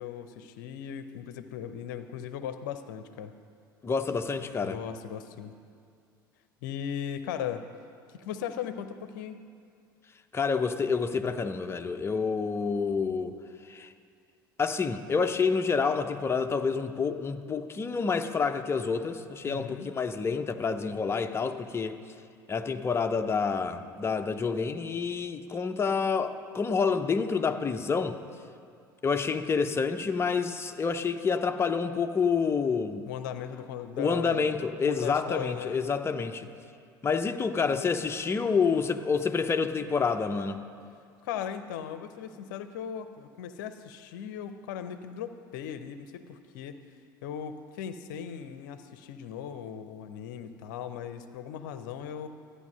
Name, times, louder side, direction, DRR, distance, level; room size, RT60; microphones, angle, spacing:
voice 1, 0.0-3.3 4.6-5.5 6.6-7.6 8.1-9.4 19.4-19.9 33.1-34.5 34.9-35.8 41.2-46.8 47.2-52.3, left 9 dB, 60° left, 10 dB, 0.7 m, -38 dB
voice 2, 3.8-4.8 10.3-13.3 13.7-13.9 14.6-22.0 22.5-28.2 29.0-33.0 34.0-36.5 37.0-40.6, left 5 dB, 20° left, 7 dB, 0.7 m, -28 dB
13.5 x 9.9 x 5.4 m, 2.3 s
figure-of-eight pair, 65°, 11 cm